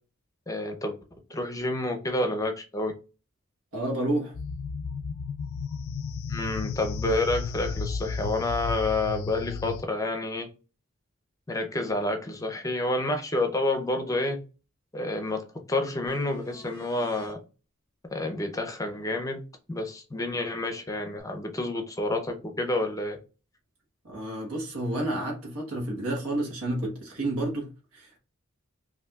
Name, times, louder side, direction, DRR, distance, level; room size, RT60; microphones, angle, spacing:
voice 1, 0.5-0.9 1.3-2.9 6.3-10.5 11.5-14.4 14.9-17.4 18.1-19.4 19.7-23.2, left 2 dB, 15° left, 0.5 m, -29 dB
voice 2, 3.7-4.3 24.0-28.2, right 1 dB, 85° right, 1.3 m, -30 dB
sound 1, 4.3-9.8, left 5 dB, 70° left, 0.3 m, -33 dB
sound 2, 16.1-17.3 21.2-21.3, left 1 dB, 15° right, 1.4 m, -51 dB
5.4 x 2.6 x 2.3 m
head